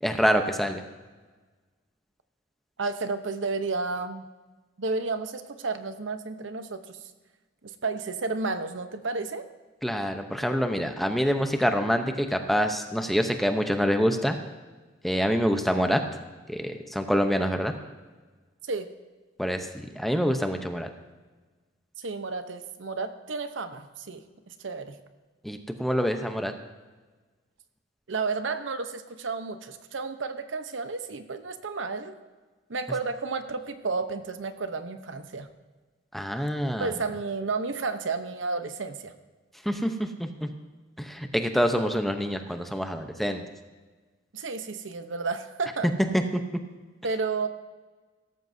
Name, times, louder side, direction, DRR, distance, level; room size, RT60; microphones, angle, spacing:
voice 1, 0.0-0.8 9.8-14.4 15.0-16.0 16.5-17.7 19.4-20.9 25.4-26.5 36.1-36.9 39.6-40.5 41.0-43.4 46.1-46.4, equal, ahead, 5 dB, 0.8 m, -26 dB
voice 2, 2.8-4.2 4.8-7.0 7.8-9.4 18.6-18.9 22.0-25.0 28.1-32.2 32.7-35.5 36.8-39.1 44.3-45.9 47.0-47.5, right 4 dB, 80° right, 9 dB, 0.9 m, -32 dB
17.0 x 13.5 x 2.7 m, 1.3 s
head